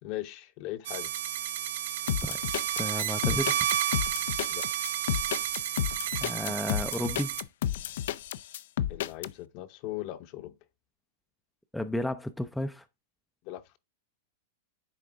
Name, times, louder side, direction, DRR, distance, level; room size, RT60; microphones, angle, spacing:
voice 1, 0.0-1.1 4.5-4.6 8.9-10.5 13.4-13.8, left 15 dB, 40° left, 0.9 m, -39 dB
sound 1, 0.8-7.4, right 11 dB, 70° right, 0.8 m, -31 dB
sound 2, 2.1-9.3, left 11 dB, 70° left, 0.5 m, -31 dB
voice 2, 2.8-3.5 6.2-7.4 11.7-12.8, left 1 dB, ahead, 0.5 m, -33 dB
10.0 x 3.9 x 3.6 m
supercardioid pair, 155°, 0 cm